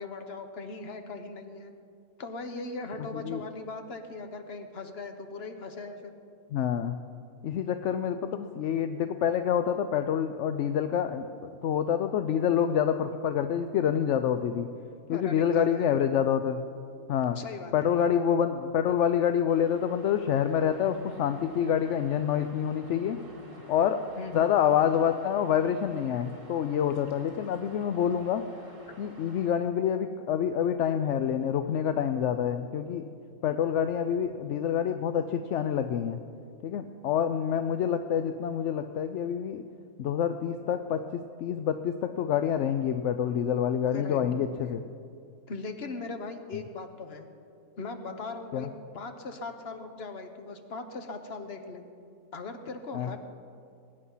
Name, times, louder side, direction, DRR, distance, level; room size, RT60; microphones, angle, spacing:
voice 1, 0.0-1.7 2.2-6.1 15.1-15.9 17.3-17.9 24.2-24.5 28.7-29.0 43.9-44.4 45.5-47.3 47.8-51.8 52.3-53.2, left 3 dB, 45° left, 7 dB, 1.3 m, -39 dB
voice 2, 6.5-7.0 7.4-11.3 11.6-14.7 15.1-16.6 17.1-17.4 17.7-23.2 23.7-24.0 24.3-28.4 29.0-33.0 33.4-36.2 36.6-39.6 40.0-41.0 41.4-44.8 48.5-48.7 52.9-53.2, left 8 dB, 65° left, 9 dB, 0.8 m, -27 dB
sound 1, 19.5-29.5, right 1 dB, 35° right, 2.7 m, -51 dB
22.0 x 10.0 x 5.6 m, 2.4 s
omnidirectional pair, 1.6 m